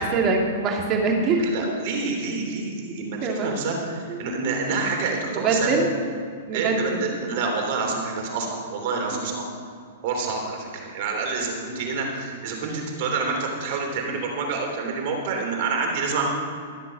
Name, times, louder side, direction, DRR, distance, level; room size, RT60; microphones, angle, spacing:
voice 1, 0.0-1.5 3.2-3.5 4.1-4.2 5.3-5.9 6.5-7.0 9.1-9.3, right 4 dB, 35° right, 1 dB, 2.6 m, -23 dB
voice 2, 1.4-5.9 6.5-9.4 10.0-16.3, right 4 dB, 55° right, 2 dB, 3.2 m, -28 dB
13.0 x 7.6 x 6.6 m, 2.2 s
hypercardioid pair, 125°, 0 cm